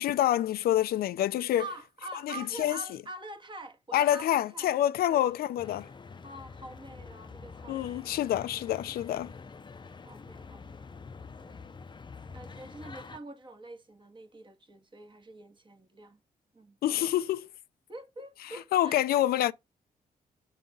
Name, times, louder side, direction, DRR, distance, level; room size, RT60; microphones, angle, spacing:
voice 1, 0.0-1.6 2.2-2.8 3.9-5.9 7.7-9.3 16.8-17.5 18.7-19.5, left 12 dB, 85° left, 0.5 m, -27 dB
voice 2, 1.6-4.7 5.1-5.4 6.2-8.8 10.0-11.0 11.4-11.6 12.3-16.2 16.5-16.8 17.9-19.0, right 2 dB, 30° right, 1.7 m, -46 dB
sound 1, 5.6-13.2, left 4 dB, 30° left, 0.6 m, -46 dB
7.2 x 4.0 x 5.3 m
cardioid pair, 70°, 15 cm